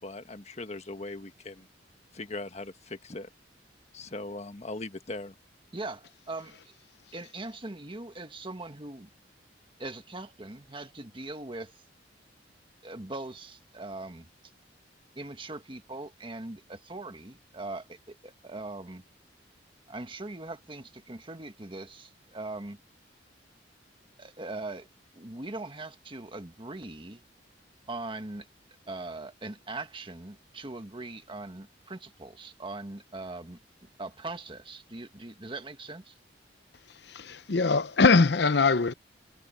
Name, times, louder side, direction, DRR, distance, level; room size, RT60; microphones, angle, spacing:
voice 1, 0.0-1.7 2.1-3.3 3.9-5.3, left 2 dB, 35° left, 1.4 m, -39 dB
voice 2, 5.7-6.7 7.1-9.1 9.8-11.8 12.8-14.3 15.1-19.0 19.9-22.8 24.2-24.9 25.1-27.2 27.9-28.5 28.9-36.2, right 2 dB, 30° right, 1.5 m, -41 dB
voice 3, 37.0-38.9, left 4 dB, 65° left, 0.8 m, -22 dB
head